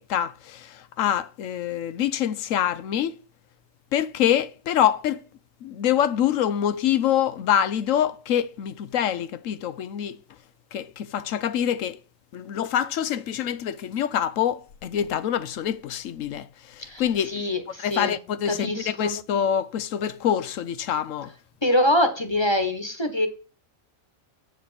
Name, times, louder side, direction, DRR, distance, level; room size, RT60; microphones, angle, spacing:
voice 1, 0.0-3.2 3.9-5.2 5.6-10.2 10.7-12.0 12.3-17.4 17.8-21.3, left 10 dB, 80° left, 1.1 m, -25 dB
voice 2, 16.8-18.1 18.4-19.2 21.6-23.3, left 1 dB, 20° left, 1.3 m, -24 dB
8.2 x 5.1 x 5.8 m
omnidirectional pair, 1.4 m